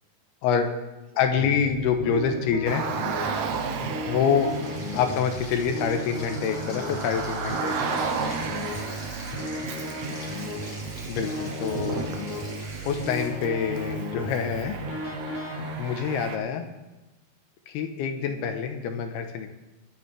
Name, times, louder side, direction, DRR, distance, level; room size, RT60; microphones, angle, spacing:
voice 1, 1.2-2.9 4.1-4.5 4.9-8.1 11.1-12.0 12.8-14.8 15.8-16.7 17.7-19.5, left 7 dB, 80° left, 6 dB, 3.0 m, -26 dB
sound 1, 1.3-15.8, equal, 25° left, 1.1 m, -35 dB
Car, 2.7-16.4, right 5 dB, 80° right, 1.6 m, -34 dB
Frying (food), 4.2-13.3, left 3 dB, 45° left, 3.0 m, -46 dB
voice 2, 9.6-10.8 11.9-12.1 18.2-18.5, right 2 dB, 55° right, -5 dB, 7.5 m, -53 dB
23.0 x 9.5 x 3.4 m, 1.1 s
omnidirectional pair, 4.6 m